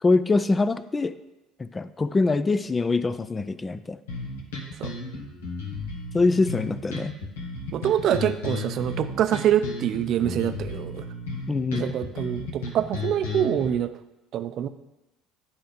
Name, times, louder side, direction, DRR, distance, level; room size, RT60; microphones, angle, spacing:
voice 1, 0.0-1.1 1.6-4.0 6.1-7.1 11.5-11.9, left 3 dB, 25° left, 14 dB, 0.5 m, -24 dB
sound 1, 4.1-13.7, left 3 dB, 80° left, 1.4 m, -34 dB
voice 2, 7.7-11.1 11.7-13.9 14.3-14.7, right 10 dB, 55° right, 11 dB, 0.5 m, -25 dB
9.8 x 4.6 x 5.2 m, 0.98 s
hypercardioid pair, 60°, 0 cm